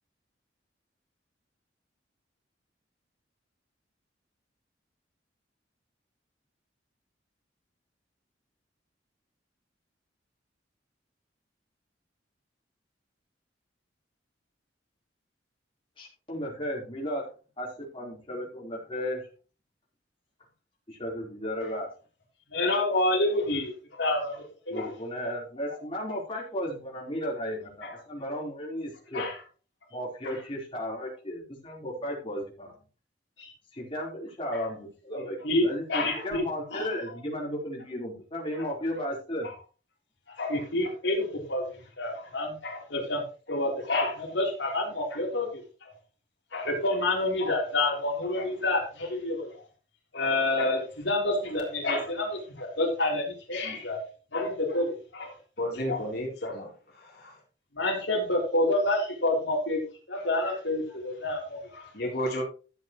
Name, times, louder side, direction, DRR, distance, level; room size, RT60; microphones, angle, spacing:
voice 1, 16.0-17.2 17.6-17.7 17.9-19.3 20.9-21.9 24.7-29.3 29.9-32.7 33.7-39.5, equal, 30° left, -4 dB, 4.3 m, -34 dB
voice 2, 22.5-24.9 27.8-27.9 29.1-29.3 33.4-33.5 35.2-36.4 36.7-36.9 40.4-41.6 42.0-43.2 43.5-45.5 46.5-49.5 50.1-54.0 54.3-55.3 55.9-56.0 57.8-59.8 60.1-61.9, left 2 dB, 75° left, -2 dB, 3.9 m, -28 dB
voice 3, 55.6-57.4 61.9-62.4, equal, 55° left, -3 dB, 3.7 m, -32 dB
14.0 x 8.3 x 3.2 m, 0.36 s
head